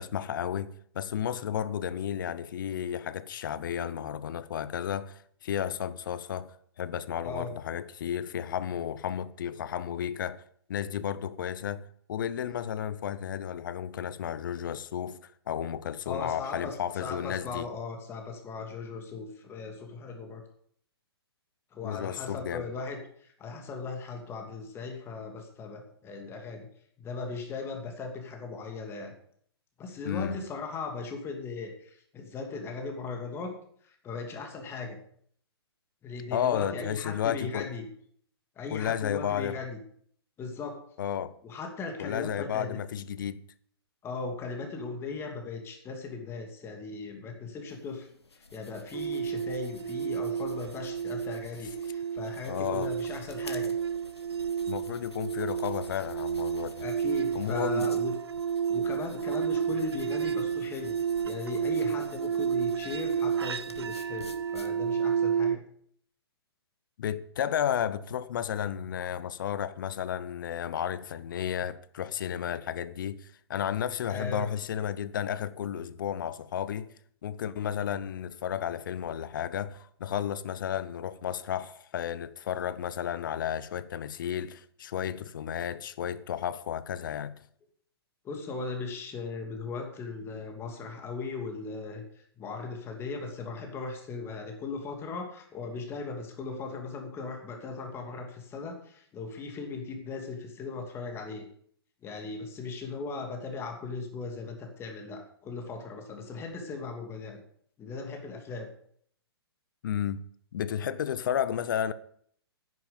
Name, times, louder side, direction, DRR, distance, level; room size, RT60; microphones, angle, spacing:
voice 1, 0.0-10.4 10.7-15.2 15.5-17.7 21.8-22.7 30.0-30.4 36.3-37.7 38.7-39.6 41.0-41.4 42.0-43.4 52.4-52.9 54.7-56.9 57.3-57.9 67.0-76.9 77.2-87.3 109.8-110.2 110.5-111.9, left 9 dB, 50° left, 0.8 m, -33 dB
voice 2, 16.1-16.7 17.0-20.4 21.7-26.7 27.0-29.1 29.8-33.5 33.8-35.0 36.0-37.9 38.6-39.8 40.4-40.8 41.4-42.8 44.0-48.1 48.3-53.7 56.8-58.1 58.7-61.0 61.2-65.6 74.1-74.5 88.2-92.0 92.4-101.5 102.0-107.4 107.8-108.7, left 4 dB, 20° left, 2.7 m, -38 dB
sound 1, 47.7-65.2, left 3 dB, 85° left, 1.6 m, -51 dB
sound 2, 48.9-65.6, right 7 dB, 75° right, 0.5 m, -31 dB
10.5 x 9.5 x 7.0 m
figure-of-eight pair, 120°, 13 cm